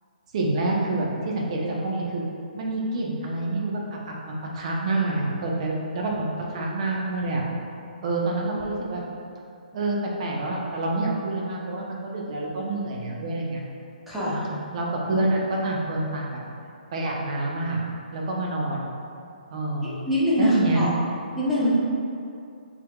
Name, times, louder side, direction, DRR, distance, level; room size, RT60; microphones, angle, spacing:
voice 1, 0.3-2.2 2.6-7.4 8.0-9.0 9.7-13.6 14.7-16.4 16.9-17.8 18.1-18.9 19.5-20.0 20.4-20.9, right 2 dB, 45° right, -2 dB, 0.7 m, -27 dB
voice 2, 14.1-14.4 19.5-20.9 21.4-21.7, equal, ahead, -12 dB, 0.9 m, -24 dB
4.5 x 3.6 x 2.3 m, 2.5 s
hypercardioid pair, 150°, 5 cm